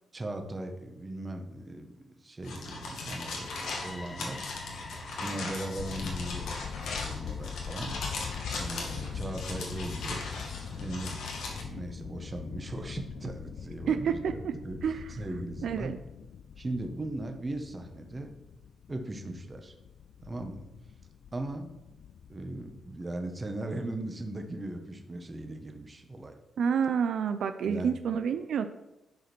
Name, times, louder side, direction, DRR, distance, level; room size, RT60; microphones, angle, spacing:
voice 1, 0.1-4.4 5.2-8.0 8.5-10.2 10.7-11.1 11.6-14.8 15.1-15.9 16.6-18.3 18.9-19.7 20.2-20.7 21.3-21.7 22.3-26.3 27.6-27.9, right 2 dB, 20° right, 4 dB, 1.3 m, -38 dB
sound 1, 2.4-11.6, left 3 dB, 80° left, 2.2 m, -38 dB
sound 2, 3.0-10.9, left 2 dB, 15° left, 0.7 m, -50 dB
sound 3, 5.7-23.0, left 8 dB, 65° left, 0.3 m, -42 dB
voice 2, 13.9-14.5 14.8-15.1 15.6-16.0 26.6-28.7, right 7 dB, 65° right, 9 dB, 0.6 m, -29 dB
11.0 x 5.1 x 6.2 m, 0.93 s
wide cardioid pair, 145°, 0 cm